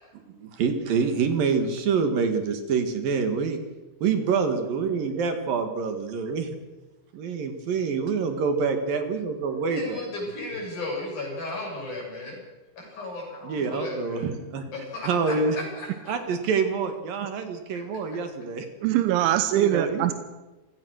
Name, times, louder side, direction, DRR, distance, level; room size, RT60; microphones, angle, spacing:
voice 1, 0.3-3.6 4.0-6.6 7.1-10.1 13.4-14.6 15.0-15.6 16.1-18.7 19.5-20.1, right 5 dB, 60° right, 7 dB, 3.1 m, -26 dB
voice 2, 9.7-12.4 12.8-14.3 14.7-15.9, left 2 dB, 40° left, 0 dB, 7.9 m, -34 dB
voice 3, 18.8-20.1, right 12 dB, 90° right, 9 dB, 3.3 m, -22 dB
28.0 x 16.5 x 6.4 m, 1.1 s
omnidirectional pair, 5.3 m